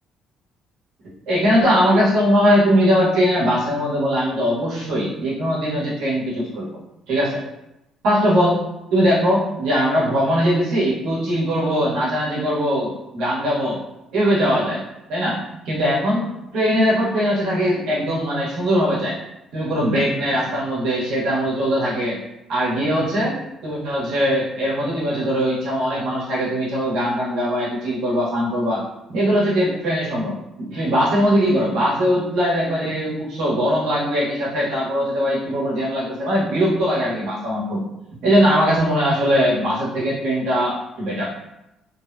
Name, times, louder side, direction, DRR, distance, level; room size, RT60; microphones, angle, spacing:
voice 1, 1.3-6.7 7.1-7.4 8.0-8.6 8.9-13.8 14.1-14.8 15.1-15.3 15.6-19.2 19.5-22.2 22.5-23.4 23.6-28.8 29.1-37.8 38.2-41.3, equal, 75° right, -7 dB, 1.3 m, -20 dB
3.2 x 2.8 x 2.2 m, 0.89 s
cardioid pair, 160°, 0 cm